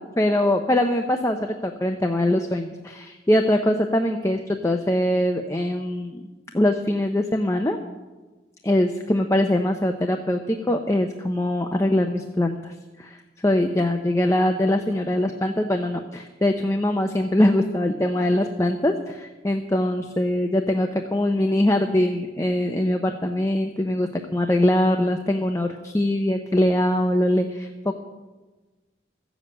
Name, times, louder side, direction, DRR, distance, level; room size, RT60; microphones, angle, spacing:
voice 1, 0.0-6.3 6.5-7.8 8.6-27.9, left 1 dB, 15° left, 4 dB, 0.6 m, -22 dB
14.5 x 7.2 x 8.6 m, 1.2 s
head